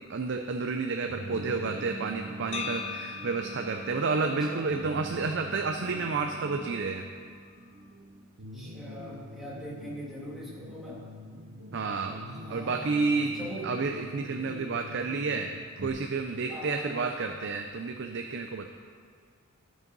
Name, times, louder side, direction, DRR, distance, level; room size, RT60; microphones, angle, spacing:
voice 1, 0.0-7.1 11.7-12.2 12.5-15.5 15.8-18.7, right 4 dB, 55° right, 4 dB, 0.5 m, -30 dB
sound 1, 1.1-15.9, right 1 dB, 90° right, 1.1 m, -44 dB
sound 2, 2.5-6.6, left 6 dB, 30° left, 0.5 m, -42 dB
voice 2, 4.2-4.6 8.5-11.0 12.4-13.0 13.3-13.7 14.4-14.7 16.5-17.0, equal, ahead, -8 dB, 2.5 m, -41 dB
12.0 x 6.3 x 5.3 m, 2.1 s
head